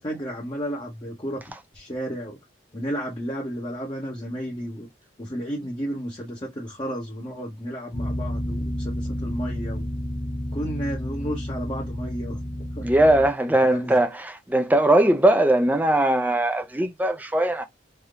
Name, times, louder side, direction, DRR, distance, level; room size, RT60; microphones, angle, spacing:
voice 1, 0.0-1.4 1.7-2.4 2.7-4.9 5.2-9.9 10.5-12.4 12.7-12.9 13.7-13.9, equal, 25° left, 0.9 m, -32 dB
sound 1, 7.9-13.3, left 1 dB, 75° left, 1.2 m, -30 dB
voice 2, 12.8-17.7, right 1 dB, 10° right, 0.5 m, -20 dB
3.4 x 2.8 x 2.3 m
head